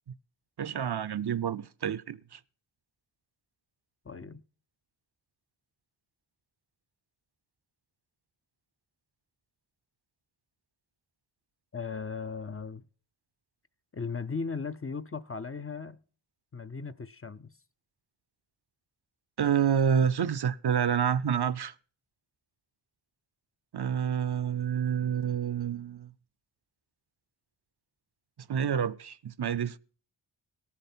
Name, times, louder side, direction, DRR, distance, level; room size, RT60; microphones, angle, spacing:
voice 1, 0.6-2.4 19.4-21.7 23.7-26.1 28.5-29.8, right 8 dB, 55° right, 0.5 m, -28 dB
voice 2, 4.1-4.4 11.7-12.8 13.9-16.0 16.5-17.5, left 5 dB, 30° left, 0.4 m, -37 dB
18.0 x 6.9 x 4.3 m
wide cardioid pair, 45°, 47 cm